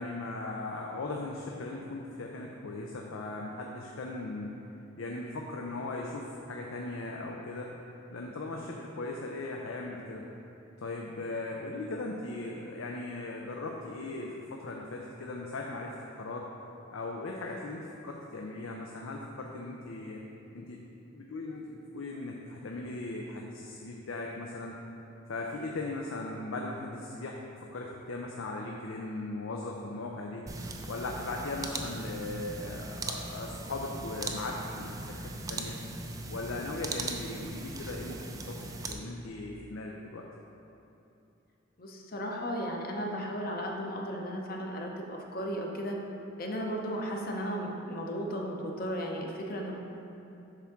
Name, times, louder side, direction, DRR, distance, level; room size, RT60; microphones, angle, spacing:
voice 1, 0.0-4.6 5.0-7.7 8.1-10.3 10.8-16.5 16.9-20.2 20.5-20.8 21.1-24.8 25.3-30.4 30.9-35.8 36.3-40.2, left 2 dB, 85° left, 0 dB, 0.5 m, -38 dB
sound 1, 30.5-38.9, right 2 dB, 15° right, 0.3 m, -39 dB
voice 2, 41.8-46.0 46.4-49.7, equal, 45° left, 0 dB, 0.8 m, -35 dB
8.1 x 3.6 x 5.9 m, 2.8 s
head